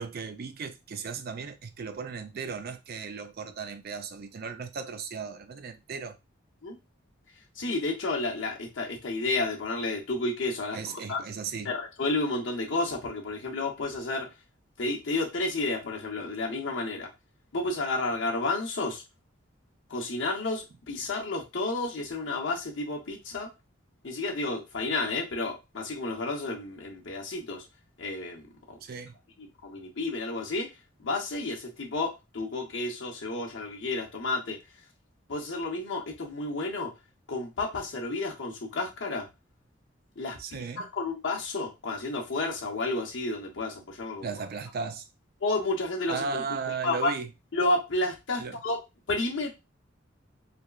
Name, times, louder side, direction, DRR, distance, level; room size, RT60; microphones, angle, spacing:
voice 1, 0.0-6.2 10.7-11.8 28.8-29.2 40.4-40.8 44.2-45.1 46.1-47.3 48.4-48.6, right 5 dB, 50° right, 0.4 m, -36 dB
voice 2, 7.6-11.2 11.6-14.3 14.8-17.1 17.5-19.0 19.9-23.5 24.0-27.6 28.0-28.8 29.4-30.7 31.0-34.6 35.3-36.9 37.3-39.3 40.2-44.3 45.4-46.4 46.8-47.1 47.5-48.8 49.1-49.5, left 2 dB, 70° left, 0.8 m, -31 dB
3.3 x 2.2 x 2.4 m
head